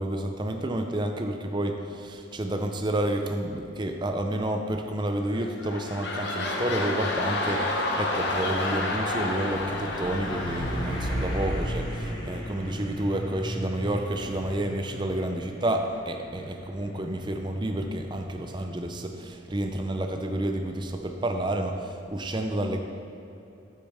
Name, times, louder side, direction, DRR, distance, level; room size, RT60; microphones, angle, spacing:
voice 1, 0.0-22.8, right 1 dB, 25° right, 5 dB, 0.5 m, -30 dB
sound 1, 5.3-11.8 12.3-12.4, left 2 dB, 60° left, 1.0 m, -30 dB
Truck, 6.5-20.8, equal, 20° left, 1.3 m, -37 dB
8.9 x 8.4 x 3.5 m, 2.8 s
head